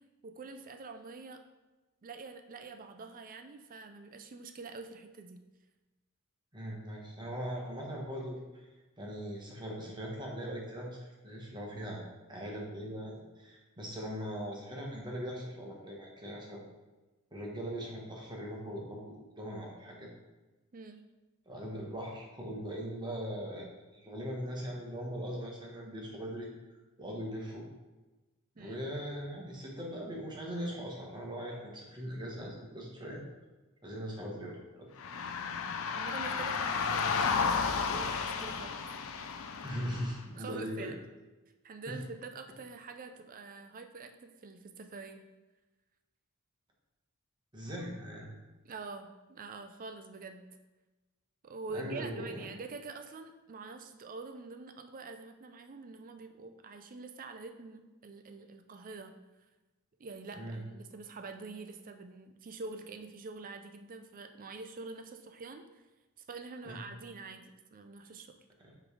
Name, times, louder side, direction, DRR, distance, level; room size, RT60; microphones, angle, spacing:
voice 1, 0.2-1.4 2.0-5.4 20.7-21.0 28.6-28.8 36.0-38.8 40.4-41.0 41.6-45.2 48.6-50.5 51.4-59.1 60.0-65.8 66.3-68.4, right 3 dB, 40° right, 7 dB, 0.5 m, -46 dB
voice 2, 6.5-8.6 9.0-12.0 12.3-16.6 17.3-20.1 21.5-23.7 23.9-26.5 27.0-27.6 28.6-33.2 33.8-34.9 39.6-40.9 41.9-42.0 47.5-48.3 51.7-52.5 60.3-60.6 66.7-66.8 68.6-68.7, equal, 20° right, -2 dB, 1.2 m, -40 dB
sound 1, 35.0-40.2, left 5 dB, 65° left, 0.5 m, -33 dB
6.0 x 3.3 x 4.9 m, 1.1 s
head